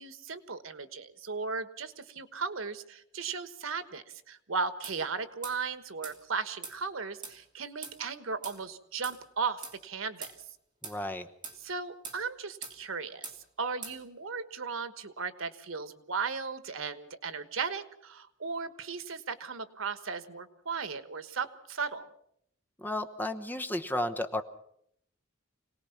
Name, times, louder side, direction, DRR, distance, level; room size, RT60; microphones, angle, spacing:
voice 1, 0.0-10.3 11.6-13.3 13.6-22.1, right 5 dB, 90° right, 12 dB, 1.3 m, -36 dB
sound 1, 4.8-5.0 5.4-5.6 6.0-6.2 6.6-6.8 7.2-7.4 7.8-8.0 8.4-8.6 9.0-9.2 9.6-9.8 10.2-10.4 10.8-11.0 11.4-11.6 12.0-12.2 12.6-12.8 13.2-13.4 13.8-14.0, right 5 dB, 25° right, 3.1 m, -42 dB
voice 2, 10.8-11.3 22.8-24.4, left 1 dB, 10° left, 6 dB, 1.0 m, -33 dB
26.0 x 18.5 x 5.9 m, 0.71 s
head